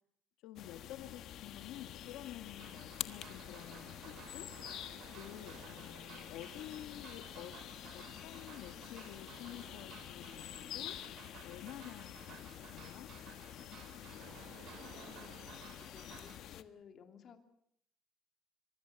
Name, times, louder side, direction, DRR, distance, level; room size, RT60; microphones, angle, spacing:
voice 1, 0.4-4.5 5.1-7.6 7.9-11.0 11.4-13.1, left 13 dB, 85° left, 8 dB, 1.4 m, -50 dB
sound 1, 0.6-16.6, left 11 dB, 60° left, 1.3 m, -48 dB
sound 2, 1.9-15.7, right 8 dB, 80° right, 3.8 m, -62 dB
sound 3, 2.5-16.4, right 8 dB, 55° right, 4.0 m, -57 dB
voice 2, 14.4-17.4, left 7 dB, 40° left, 6 dB, 2.9 m, -58 dB
25.5 x 24.0 x 6.9 m, 0.71 s
cardioid pair, 150°, 0 cm